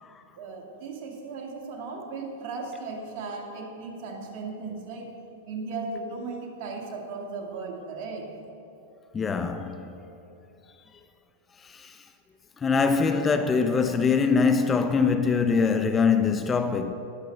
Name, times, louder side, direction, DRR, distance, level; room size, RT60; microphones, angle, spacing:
voice 1, 0.4-5.1 5.5-8.3, right 4 dB, 55° right, 1.8 m, -36 dB
voice 2, 9.1-9.9 11.6-12.0 12.6-16.9, left 5 dB, 20° left, 0.5 m, -23 dB
19.5 x 6.7 x 3.3 m
hypercardioid pair, 110°, 0 cm